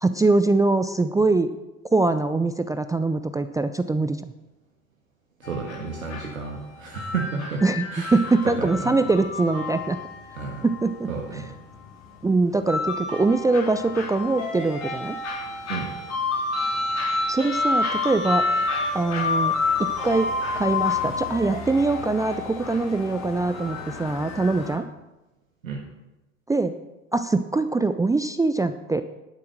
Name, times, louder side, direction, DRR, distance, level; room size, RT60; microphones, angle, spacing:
voice 1, 0.0-1.5 1.9-4.2 7.6-7.8 8.1-10.0 10.6-11.4 12.2-15.2 17.3-18.4 18.9-19.5 19.8-20.3 20.6-24.9 26.5-26.7 27.1-29.0, right 3 dB, 10° right, 10 dB, 0.5 m, -23 dB
sound 1, 5.4-24.8, left 3 dB, 40° left, 3.8 m, -29 dB
voice 2, 5.4-7.6 7.9-8.2 8.6-8.9 10.3-10.7 11.1-11.5 15.7-15.9 25.6-25.8, right 4 dB, 85° right, 0 dB, 1.8 m, -32 dB
11.5 x 8.4 x 6.5 m, 1.0 s
figure-of-eight pair, 70°, 41 cm